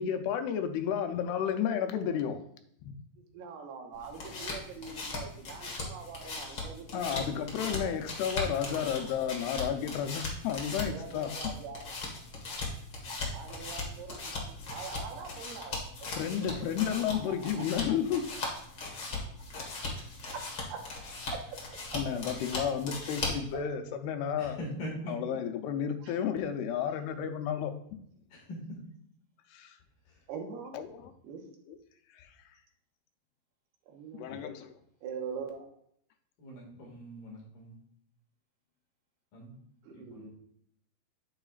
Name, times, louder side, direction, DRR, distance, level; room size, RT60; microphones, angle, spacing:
voice 1, 0.0-2.4 2.8-3.0 6.9-11.4 16.1-18.3 21.9-24.6 25.1-27.7 29.5-29.8 30.7-31.1 31.7-31.8 32.1-32.3 34.1-34.7, left 8 dB, 90° left, 7 dB, 2.7 m, -32 dB
voice 2, 3.2-8.2 8.8-8.9 10.9-11.8 13.3-16.7 20.3-20.4 20.7-20.8 21.9-22.0 26.0-26.1 27.2-27.4 30.3-30.8 31.2-31.4 33.9-34.4 35.0-35.6 39.8-40.3, right 6 dB, 85° right, 2 dB, 3.1 m, -43 dB
sound 1, 3.9-23.5, left 3 dB, 45° left, 1.5 m, -39 dB
voice 3, 24.4-25.1 28.3-28.6 36.4-37.8 39.3-39.6 39.9-40.3, equal, 60° left, -3 dB, 3.5 m, -42 dB
8.9 x 8.9 x 2.4 m, 0.68 s
omnidirectional pair, 4.4 m